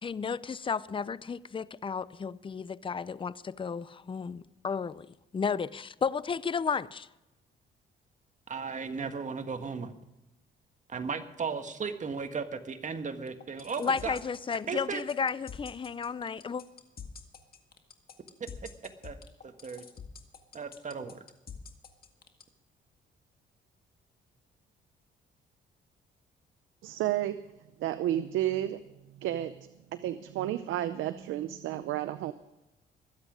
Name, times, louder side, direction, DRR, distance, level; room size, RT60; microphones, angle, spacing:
voice 1, 0.0-5.1 5.3-7.1 13.8-16.6, left 6 dB, 25° left, 0.6 m, -33 dB
voice 2, 8.5-9.9 10.9-14.2 14.7-15.0 18.4-19.2 19.4-19.9 20.5-21.2, right 5 dB, 40° right, 1.5 m, -36 dB
sound 1, 13.3-22.4, left 6 dB, 50° left, 1.9 m, -46 dB
voice 3, 26.8-27.4 27.8-28.8 29.2-29.5 29.9-32.3, right 13 dB, 85° right, 0.6 m, -31 dB
22.5 x 8.3 x 5.1 m
cardioid pair, 90°, 20 cm